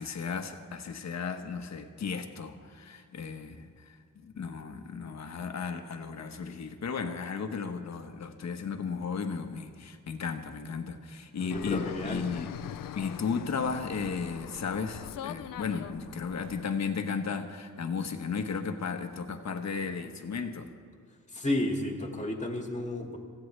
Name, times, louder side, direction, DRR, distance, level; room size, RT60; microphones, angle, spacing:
voice 1, 0.0-12.5 12.9-20.7, left 5 dB, 55° left, 6 dB, 1.3 m, -35 dB
voice 2, 11.4-12.2 21.3-23.2, left 1 dB, 20° left, 2 dB, 2.1 m, -32 dB
Fixed-wing aircraft airplane, 11.5-16.6, left 10 dB, 80° left, 0.7 m, -42 dB
26.0 x 15.5 x 3.4 m, 2.1 s
wide cardioid pair, 125°, 33 cm